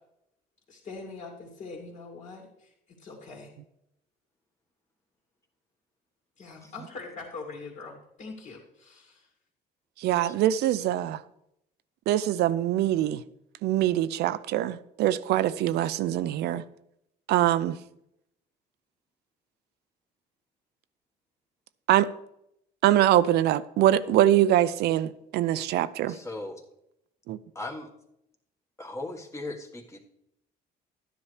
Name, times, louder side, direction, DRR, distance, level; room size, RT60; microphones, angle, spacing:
voice 1, 0.7-2.7 3.0-3.5 6.4-9.3, left 3 dB, 50° left, 2.5 m, -42 dB
voice 2, 10.0-11.2 12.1-13.2 13.6-16.6 17.3-17.8 21.9-22.1 22.8-26.2 27.3-27.4, right 12 dB, 75° right, 0.5 m, -23 dB
voice 3, 26.1-26.6 27.5-27.9 28.8-30.0, left 2 dB, 15° left, 1.5 m, -38 dB
12.0 x 10.0 x 3.2 m
cardioid pair, 110°, 17 cm